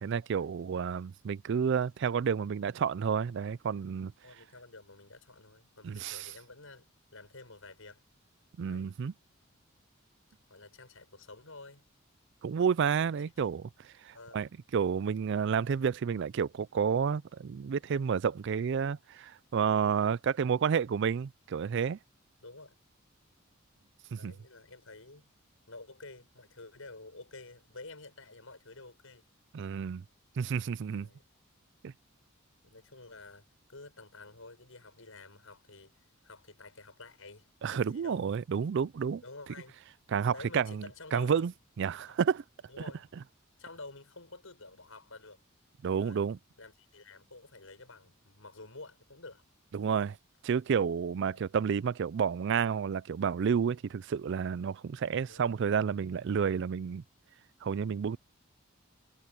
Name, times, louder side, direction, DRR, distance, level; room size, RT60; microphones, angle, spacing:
voice 1, 0.0-4.1 5.8-6.3 8.6-9.1 12.4-22.0 24.1-24.3 29.5-30.0 30.4-31.1 31.8-31.9 37.6-39.2 40.1-40.9 41.1-41.5 41.8-42.4 45.8-46.4 49.7-50.2 50.4-57.0 57.6-58.2, right 6 dB, 55° right, 0.4 m, -30 dB
voice 2, 4.2-6.9 7.1-8.0 8.6-8.9 10.5-11.9 13.0-13.5 14.1-14.5 22.4-22.8 24.2-25.4 25.7-29.3 30.9-31.2 32.6-38.2 39.2-39.8 40.3-41.5 42.1-42.2 42.7-43.0 43.6-45.4 46.0-46.3 46.6-49.4 51.2-51.4 55.3-55.5, left 3 dB, 75° left, 6.2 m, -50 dB
head